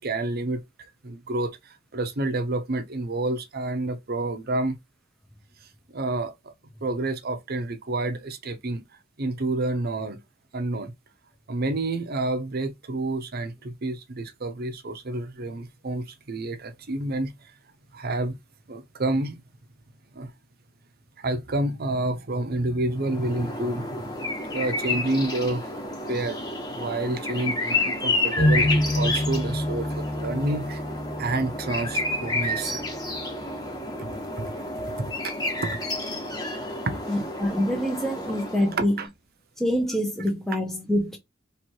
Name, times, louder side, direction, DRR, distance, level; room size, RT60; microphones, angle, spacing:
voice 1, 0.0-4.8 5.9-6.3 6.8-8.8 9.2-10.2 10.5-10.9 11.5-17.3 17.9-18.4 18.7-19.4 20.1-20.3 21.2-24.1 24.4-25.7 26.1-26.4 26.7-30.8 31.2-32.8 34.0-34.1 34.4-34.5 35.0-35.1 35.6-35.8 36.9-37.0 38.7-39.1, right 2 dB, 50° right, 0.7 m, -29 dB
sound 1, 23.0-38.9, left 2 dB, 20° left, 1.2 m, -30 dB
sound 2, 28.4-34.1, left 1 dB, 65° left, 1.3 m, -28 dB
voice 2, 37.1-38.9 39.6-41.2, equal, ahead, 0.7 m, -25 dB
3.3 x 3.1 x 4.4 m
head